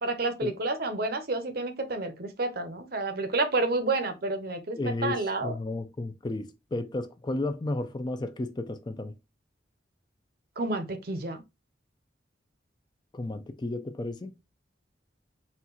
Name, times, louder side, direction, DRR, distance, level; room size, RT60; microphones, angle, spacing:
voice 1, 0.0-5.6 10.6-11.4, right 2 dB, 55° right, 0.8 m, -30 dB
voice 2, 4.7-9.1 13.1-14.3, left 2 dB, 25° left, 0.4 m, -33 dB
4.3 x 2.4 x 3.9 m
head